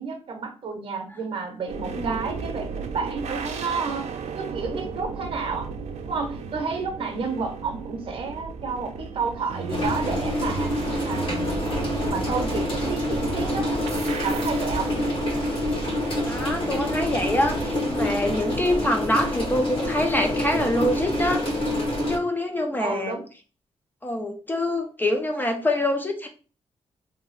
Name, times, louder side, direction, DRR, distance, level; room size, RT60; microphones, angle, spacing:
voice 1, 0.0-4.1 4.4-5.7 6.0-10.7 11.0-11.7 12.1-13.7 14.2-15.0 22.8-23.2, right 5 dB, 55° right, 4 dB, 0.7 m, -31 dB
sound 1, 1.7-18.6, right 5 dB, 85° right, 0.4 m, -35 dB
sound 2, 9.7-22.2, left 1 dB, 55° left, 1.1 m, -27 dB
voice 2, 16.2-21.4 22.1-23.2 24.0-26.3, left 1 dB, 15° left, 4 dB, 0.4 m, -25 dB
2.7 x 2.4 x 3.1 m, 0.37 s
wide cardioid pair, 145°, 11 cm